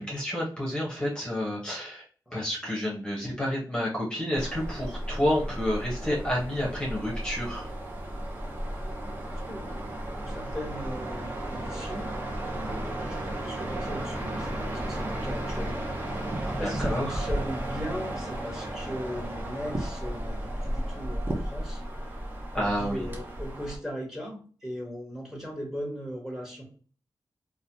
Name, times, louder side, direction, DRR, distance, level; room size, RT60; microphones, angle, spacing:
voice 1, 0.0-2.0 2.3-7.7 16.6-17.1 22.5-23.0, equal, 10° left, -4 dB, 1.0 m, -29 dB
sound 1, 4.3-23.8, right 1 dB, 25° right, 0.7 m, -34 dB
voice 2, 9.5-9.8 10.2-12.2 12.5-22.2 22.5-26.6, equal, 5° right, -1 dB, 1.2 m, -38 dB
3.0 x 2.2 x 2.7 m, 0.42 s
wide cardioid pair, 95°, 8 cm